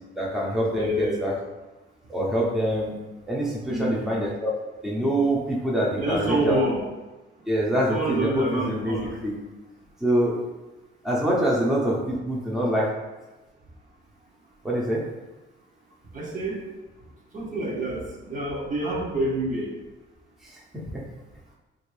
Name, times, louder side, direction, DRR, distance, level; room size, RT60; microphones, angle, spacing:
voice 1, 0.2-1.3 2.1-3.0 3.3-4.5 4.8-6.6 7.5-8.9 9.2-9.3 10.0-10.4 11.0-12.9 14.6-15.0 20.4-21.0, equal, ahead, -5 dB, 0.7 m, -25 dB
voice 2, 0.7-1.3 3.7-4.1 6.0-6.8 7.9-9.1 16.1-16.6 17.3-19.7, right 1 dB, 40° right, -3 dB, 0.9 m, -27 dB
3.0 x 2.6 x 3.2 m, 1.1 s
cardioid pair, 90°, 20 cm